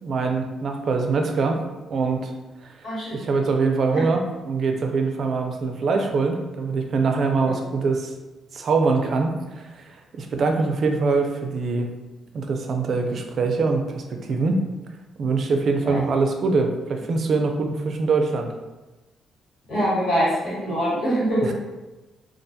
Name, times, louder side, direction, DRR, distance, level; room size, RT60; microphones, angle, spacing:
voice 1, 0.0-1.6 1.9-2.3 2.6-2.7 3.1-8.1 8.5-11.9 12.3-14.6 15.2-18.5 21.4-21.5, right 4 dB, 55° right, 3 dB, 0.3 m, -23 dB
voice 2, 2.8-3.2 3.9-4.0 7.5-7.6 15.8-16.0 19.7-21.5, equal, 75° left, -8 dB, 1.3 m, -24 dB
2.3 x 2.2 x 2.7 m, 1.1 s
cardioid pair, 90°, 0 cm